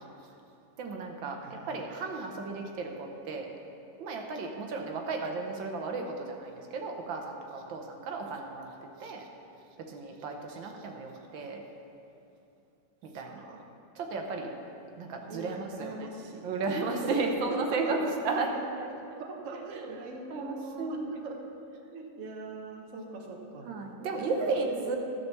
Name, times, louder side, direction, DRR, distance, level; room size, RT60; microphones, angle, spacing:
voice 1, 0.8-3.5 4.0-8.7 9.0-9.3 9.8-11.6 13.0-13.4 13.9-14.5 15.0-16.1 16.4-19.2 19.7-20.0 20.3-21.0 23.6-25.0, right 3 dB, 80° right, 3 dB, 1.7 m, -34 dB
voice 2, 1.4-1.8 13.1-13.6 15.3-16.4 16.9-18.1 18.9-21.4 21.9-23.7 24.1-25.0, right 3 dB, 45° right, 1 dB, 1.3 m, -42 dB
12.5 x 5.8 x 6.8 m, 2.6 s
omnidirectional pair, 2.1 m